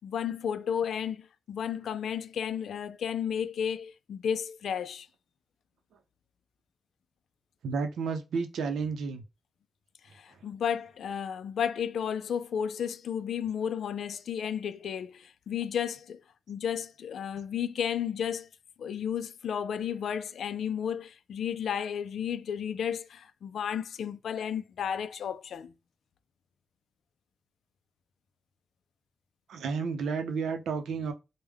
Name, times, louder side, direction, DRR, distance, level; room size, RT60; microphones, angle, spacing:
voice 1, 0.0-5.1 10.1-16.2 16.5-18.5 18.8-25.7, left 8 dB, 70° left, 0.3 m, -33 dB
voice 2, 7.6-9.2 29.5-31.1, right 5 dB, 85° right, 0.6 m, -31 dB
3.5 x 2.1 x 3.3 m
wide cardioid pair, 150°, 0 cm